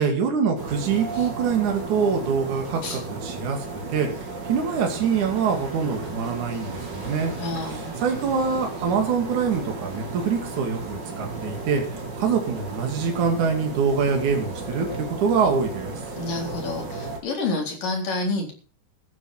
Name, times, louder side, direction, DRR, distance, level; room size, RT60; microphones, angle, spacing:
voice 1, 0.0-3.6 3.9-4.1 4.5-7.3 8.0-11.8 12.2-15.9, right 6 dB, 55° right, 3 dB, 3.8 m, -24 dB
sound 1, 0.6-17.2, right 3 dB, 30° right, 3.5 m, -34 dB
voice 2, 7.4-7.9 16.2-18.5, left 3 dB, 65° left, 1 dB, 5.5 m, -29 dB
14.5 x 10.5 x 5.7 m, 0.39 s
omnidirectional pair, 4.2 m